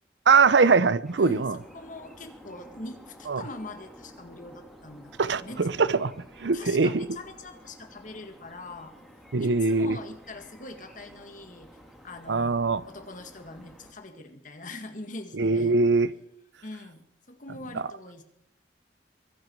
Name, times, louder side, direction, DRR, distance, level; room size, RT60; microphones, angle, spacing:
voice 1, 0.3-1.6 3.3-3.4 5.2-7.1 9.3-10.0 12.3-12.8 15.3-16.1, right 4 dB, 85° right, 0.7 m, -22 dB
sound 1, 1.0-13.9, equal, ahead, 2.7 m, -51 dB
voice 2, 1.7-5.1 5.4-5.6 6.5-8.9 9.4-11.7 12.0-15.7 16.6-18.2, left 2 dB, 45° left, 2.0 m, -42 dB
23.5 x 11.0 x 4.7 m
head